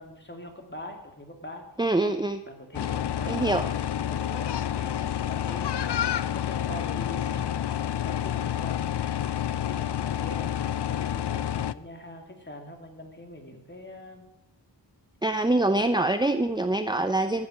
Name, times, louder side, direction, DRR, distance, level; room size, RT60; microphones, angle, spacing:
voice 1, 0.0-1.7 2.5-14.2, left 1 dB, 25° left, 3 dB, 3.0 m, -43 dB
voice 2, 1.8-2.4 3.3-3.7 15.2-17.5, right 2 dB, 10° right, 9 dB, 0.7 m, -24 dB
sound 1, 2.7-11.7, left 10 dB, 65° left, 0.6 m, -29 dB
14.5 x 8.6 x 8.7 m, 0.95 s
wide cardioid pair, 70°, 43 cm